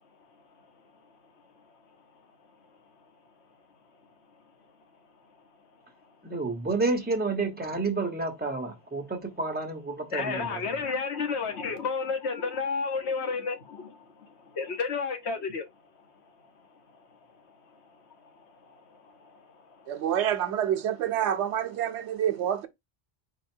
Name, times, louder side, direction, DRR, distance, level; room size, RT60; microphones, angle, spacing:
voice 1, 6.2-10.6, right 3 dB, 10° right, 1.0 m, -30 dB
voice 2, 10.1-13.9 14.6-15.6, left 5 dB, 75° left, 1.2 m, -30 dB
voice 3, 19.9-22.7, right 10 dB, 85° right, 1.0 m, -27 dB
4.6 x 2.3 x 4.4 m
omnidirectional pair, 1.1 m